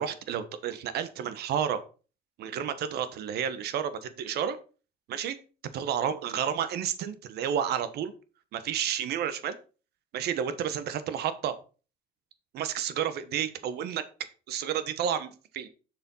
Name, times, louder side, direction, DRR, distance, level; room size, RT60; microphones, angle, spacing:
voice 1, 0.0-1.8 2.4-4.6 5.1-5.4 5.7-8.1 8.5-9.6 10.1-11.5 12.5-14.0 14.5-15.7, right 9 dB, 70° right, 12 dB, 1.1 m, -31 dB
6.8 x 4.9 x 5.6 m, 0.35 s
cardioid pair, 110°, 17 cm